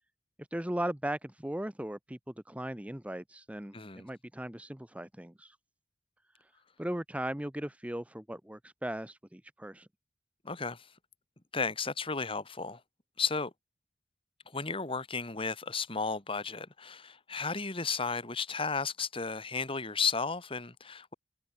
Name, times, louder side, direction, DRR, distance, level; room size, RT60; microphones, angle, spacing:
voice 1, 0.5-5.6 6.4-6.5 6.8-9.9, right 1 dB, 10° right, 0.9 m, -38 dB
voice 2, 3.7-4.1 10.4-10.9 11.5-12.8 13.2-13.5 14.5-21.1, left 5 dB, 30° left, 2.3 m, -34 dB
head